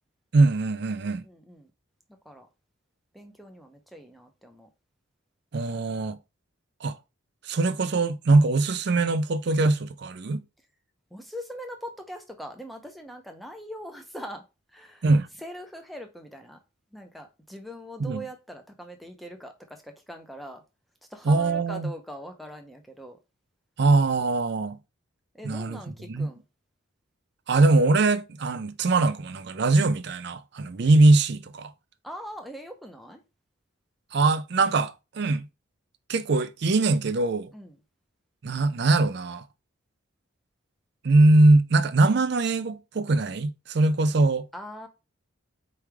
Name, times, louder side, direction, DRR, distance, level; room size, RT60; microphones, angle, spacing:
voice 1, 0.3-1.2 5.5-6.2 6.8-7.0 7.4-10.4 15.0-15.3 18.0-18.2 21.3-21.9 23.8-24.8 25.4-25.8 26.1-26.3 27.5-31.7 34.1-35.5 36.1-37.5 38.4-39.4 41.0-44.5, right 2 dB, 55° right, 0.4 m, -22 dB
voice 2, 1.0-1.7 2.2-2.5 3.1-4.7 11.1-15.1 15.4-16.6 16.9-20.6 21.1-23.2 25.3-26.4 32.0-33.2 37.5-37.8 44.5-44.9, equal, ahead, 0.7 m, -42 dB
4.7 x 3.2 x 3.4 m
head